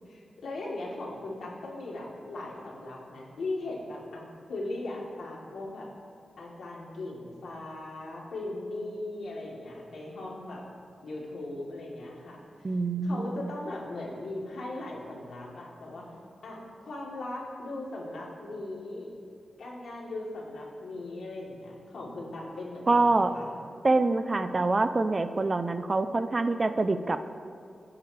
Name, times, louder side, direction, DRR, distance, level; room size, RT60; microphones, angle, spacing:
voice 1, 0.1-5.9 6.4-10.6 11.0-12.4 13.0-16.1 16.4-19.1 19.6-23.5, left 2 dB, 90° left, -4 dB, 3.4 m, -38 dB
voice 2, 12.6-13.5 22.9-23.3 23.8-27.2, right 3 dB, 35° right, 10 dB, 0.6 m, -25 dB
27.0 x 9.8 x 3.4 m, 2.5 s
wide cardioid pair, 105°, 0 cm